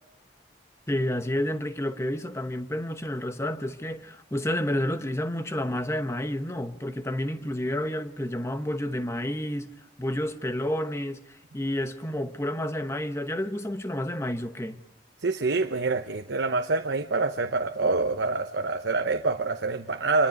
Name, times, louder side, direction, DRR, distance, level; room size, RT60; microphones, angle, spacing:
voice 1, 0.9-9.7 10.0-14.8, left 1 dB, 15° left, 1.0 m, -30 dB
voice 2, 15.2-20.3, right 3 dB, 85° right, 1.0 m, -26 dB
26.5 x 23.5 x 5.3 m
head